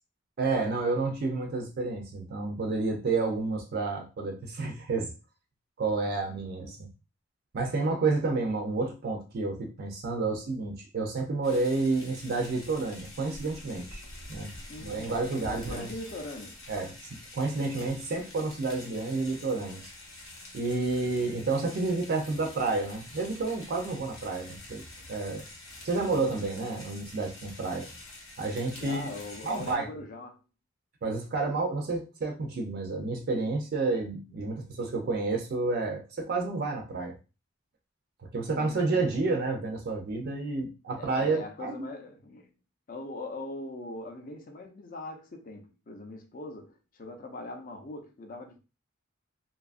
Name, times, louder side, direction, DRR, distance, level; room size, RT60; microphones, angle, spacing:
voice 1, 0.4-5.1 5.8-6.9 7.5-14.0 14.3-14.5 14.8-15.9 16.7-17.0 17.3-19.9 20.5-24.8 25.1-25.5 25.8-27.9 28.4-29.1 29.4-29.9 31.0-37.2 38.3-41.9, right 3 dB, 45° right, 0.4 m, -30 dB
voice 2, 6.3-6.8 14.7-16.7 21.0-21.4 26.0-26.4 28.7-30.4 38.5-39.1 41.0-42.5 42.9-48.6, left 2 dB, 40° left, 0.5 m, -42 dB
sound 1, 11.4-29.7, left 2 dB, 70° left, 0.8 m, -47 dB
2.7 x 2.3 x 2.4 m
head